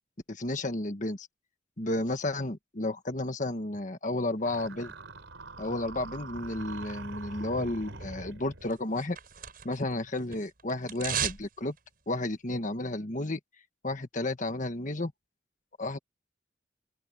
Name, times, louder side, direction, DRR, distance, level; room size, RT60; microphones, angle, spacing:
voice 1, 0.3-1.3 1.8-4.9 5.6-9.2 9.6-11.7 12.1-13.4 13.8-15.1 15.8-16.0, left 2 dB, 40° left, 1.5 m, -32 dB
sound 1, 4.5-8.8, right 2 dB, 85° right, 3.7 m, -43 dB
sound 2, 8.7-9.9 10.2-11.5 11.8-11.9, right 8 dB, 50° right, 7.2 m, -34 dB
open air
head